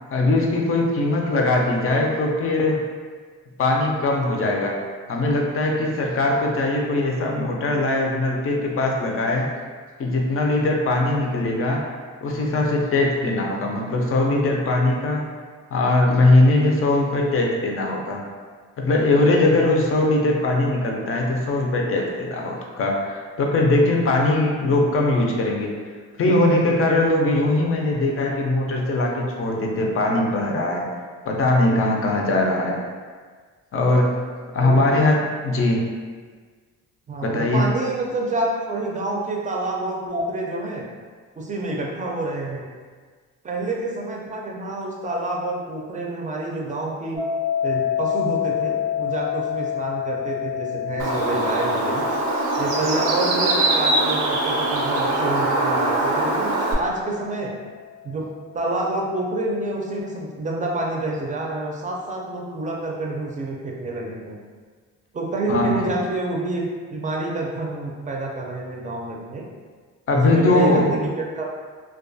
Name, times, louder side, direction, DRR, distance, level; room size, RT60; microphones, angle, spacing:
voice 1, 0.1-2.8 3.6-4.8 5.1-9.5 10.0-11.8 12.2-15.3 15.7-18.2 18.8-25.8 26.2-30.8 31.3-32.8 33.7-34.2 34.5-35.9 37.2-37.7 65.5-65.7 70.1-70.9, left 2 dB, 45° left, 0 dB, 0.5 m, -20 dB
voice 2, 37.1-40.8 41.4-42.7 43.4-47.2 47.6-52.0 52.6-57.5 58.0-58.3 58.5-64.4 65.1-69.4 70.1-71.5, right 2 dB, 25° right, -1 dB, 0.5 m, -28 dB
sound 1, 47.1-58.1, left 9 dB, 85° left, 0.6 m, -29 dB
Bird, 51.0-56.7, right 2 dB, 85° right, 0.5 m, -22 dB
2.3 x 2.2 x 2.6 m, 1.5 s
cardioid pair, 90°, 30 cm